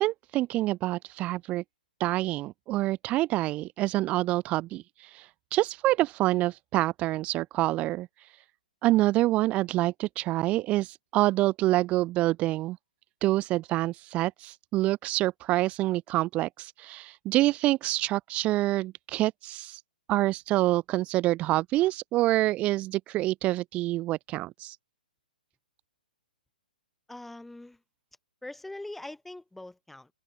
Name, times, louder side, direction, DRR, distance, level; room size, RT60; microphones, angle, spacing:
voice 1, 0.0-1.6 2.0-8.4 8.8-12.8 13.2-19.8 20.1-24.8, right 17 dB, 25° right, 1.3 m, -27 dB
voice 2, 27.1-27.8 28.4-30.1, left 2 dB, 5° left, 7.0 m, -42 dB
open air
hypercardioid pair, 140°, 5 cm